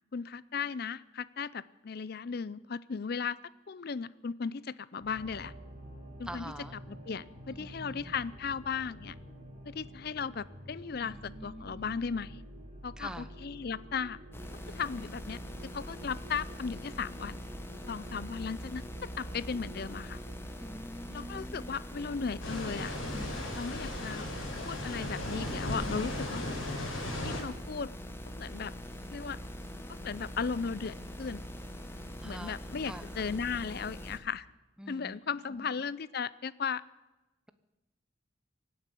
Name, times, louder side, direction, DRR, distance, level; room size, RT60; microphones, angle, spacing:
voice 1, 0.1-3.4 3.7-5.5 6.2-9.2 9.6-12.4 12.8-14.2 14.7-17.4 17.9-20.2 21.1-23.0 23.6-24.3 24.6-26.6 27.2-27.9 28.3-28.7 29.1-29.4 29.9-31.4 32.2-34.5 34.9-36.8, left 5 dB, 50° left, 19 dB, 0.5 m, -36 dB
sound 1, 5.0-20.7, equal, 40° right, 4.9 m, -49 dB
voice 2, 6.2-6.7 7.5-8.1 11.0-12.0 13.0-13.3 20.6-21.7 32.2-32.6 32.8-33.0 33.4-33.5 34.8-35.2 35.5-35.8, equal, 5° right, 10 dB, 0.8 m, -46 dB
sound 2, 14.3-34.2, equal, 10° left, 1.3 m, -43 dB
sound 3, 22.4-27.4, left 1 dB, 85° left, 4.7 m, -36 dB
17.0 x 9.5 x 8.3 m, 1.1 s
head